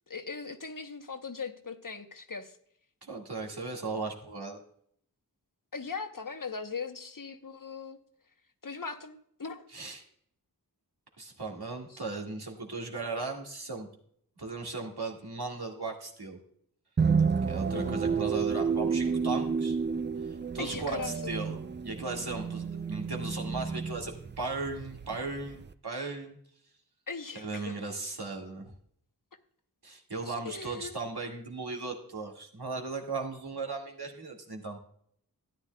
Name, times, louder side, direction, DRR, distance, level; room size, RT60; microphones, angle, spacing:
voice 1, 0.1-2.6 5.7-8.0 8.6-9.6 11.9-12.0 17.7-18.0 20.6-21.1 27.1-28.1 30.3-30.9, left 5 dB, 55° left, 8 dB, 0.9 m, -39 dB
voice 2, 3.0-4.6 9.7-10.0 11.2-13.9 14.4-16.4 17.5-19.8 20.2-26.4 27.4-28.7 29.8-34.8, right 3 dB, 75° right, 1 dB, 1.9 m, -37 dB
sound 1, 17.0-25.7, right 5 dB, 30° right, 0.4 m, -31 dB
13.0 x 9.8 x 2.2 m, 0.65 s
wide cardioid pair, 40°, 39 cm